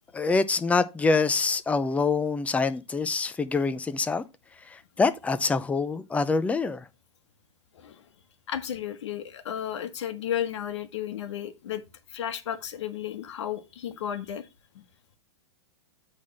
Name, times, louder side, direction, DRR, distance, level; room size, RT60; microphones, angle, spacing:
voice 1, 0.1-4.2 4.7-6.8, left 4 dB, 10° left, 0.5 m, -25 dB
voice 2, 8.5-11.8 12.1-14.5 14.7-14.8, left 10 dB, 80° left, 1.2 m, -33 dB
8.6 x 3.5 x 5.2 m
hypercardioid pair, 130°, 15 cm